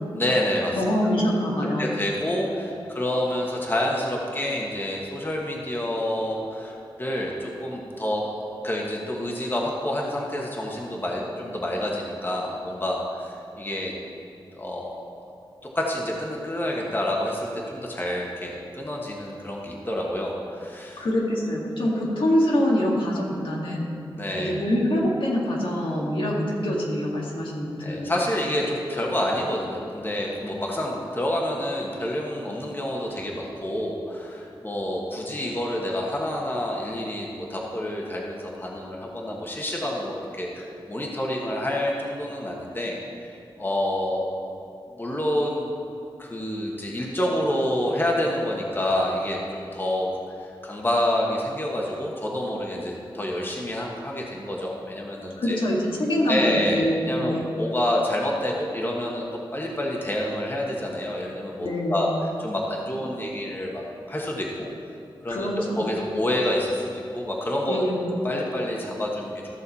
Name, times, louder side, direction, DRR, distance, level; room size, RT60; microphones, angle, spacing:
voice 1, 0.1-0.8 1.0-1.2 1.8-13.9 14.5-15.0 15.7-21.0 24.2-24.6 27.8-44.5 45.0-45.7 46.2-50.1 50.4-55.6 56.3-59.2 59.5-62.1 62.4-64.7 65.2-67.8 68.2-69.4, left 1 dB, 25° left, -2 dB, 1.3 m, -28 dB
voice 2, 0.7-1.9 2.7-2.8 21.0-23.9 24.3-28.1 55.4-57.5 61.6-62.1 63.4-63.5 65.3-65.8 67.7-68.1, equal, 75° left, -4 dB, 1.9 m, -25 dB
14.5 x 6.4 x 4.2 m, 2.7 s
wide cardioid pair, 90°, 9 cm